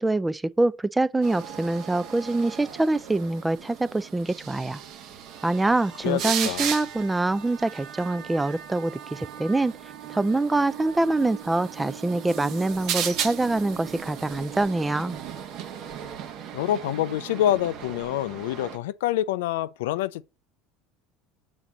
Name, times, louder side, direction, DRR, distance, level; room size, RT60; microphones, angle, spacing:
voice 1, 0.0-4.8 5.4-9.7 10.1-15.2, right 2 dB, 10° right, 0.4 m, -25 dB
sound 1, 1.2-18.8, right 8 dB, 60° right, 1.0 m, -36 dB
voice 2, 6.0-6.7 16.5-20.2, left 12 dB, 85° left, 0.3 m, -26 dB
5.8 x 3.9 x 6.1 m
supercardioid pair, 100°, 0 cm